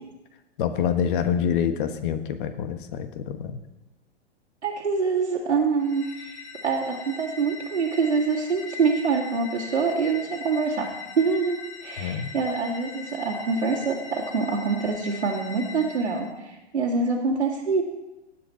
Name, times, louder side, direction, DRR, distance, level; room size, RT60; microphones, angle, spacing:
voice 1, 0.6-3.6 12.0-12.3, left 8 dB, 50° left, 9 dB, 1.2 m, -26 dB
voice 2, 4.6-10.9 11.2-17.8, right 4 dB, 90° right, -4 dB, 2.5 m, -25 dB
sound 1, 5.8-16.3, left 5 dB, 80° left, 2.3 m, -41 dB
18.0 x 7.8 x 4.5 m, 1.0 s
hypercardioid pair, 120°, 34 cm